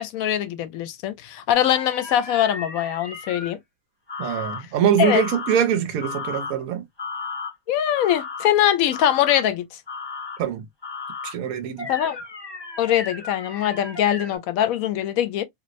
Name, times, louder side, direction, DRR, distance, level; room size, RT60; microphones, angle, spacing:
voice 1, 0.0-3.6 5.0-5.2 7.7-9.8 11.9-12.2 12.8-15.4, left 11 dB, 85° left, 1.0 m, -22 dB
sound 1, 1.5-3.5 4.1-4.6 5.0-5.6 6.0-6.6 7.0-7.5 8.0-8.5 8.9-9.4 9.9-10.4 10.8-11.3 11.8-14.4, left 4 dB, 20° left, 1.1 m, -34 dB
voice 2, 4.2-6.8 10.4-10.6 11.2-11.9, right 8 dB, 90° right, 1.1 m, -23 dB
3.1 x 2.8 x 2.5 m
omnidirectional pair, 1.4 m